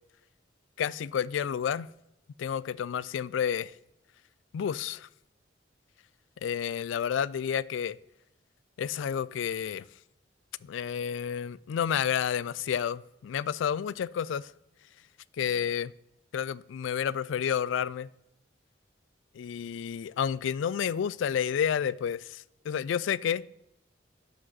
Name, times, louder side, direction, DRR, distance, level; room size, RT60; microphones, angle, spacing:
voice 1, 0.8-1.9 2.4-3.7 4.5-5.1 6.4-8.0 8.8-9.8 10.6-14.5 15.4-15.9 16.3-18.1 19.4-23.4, left 8 dB, 80° left, 0.3 m, -30 dB
12.0 x 5.1 x 3.9 m
head